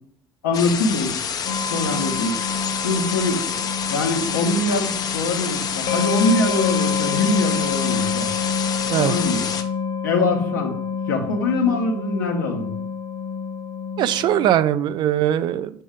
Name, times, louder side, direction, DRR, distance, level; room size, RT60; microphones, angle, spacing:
voice 1, 0.4-1.2 1.7-2.3 2.8-3.5 3.9-8.3 9.0-9.4 10.0-10.8 11.1-12.7, left 2 dB, 70° left, 2 dB, 1.0 m, -23 dB
sound 1, 0.5-9.6, left 7 dB, 40° left, 0.5 m, -28 dB
sound 2, 1.4-14.5, left 5 dB, 55° left, 1.4 m, -27 dB
voice 2, 14.0-15.8, right 11 dB, 45° right, 14 dB, 0.3 m, -20 dB
7.1 x 2.7 x 4.9 m, 0.64 s
figure-of-eight pair, 60°, 11 cm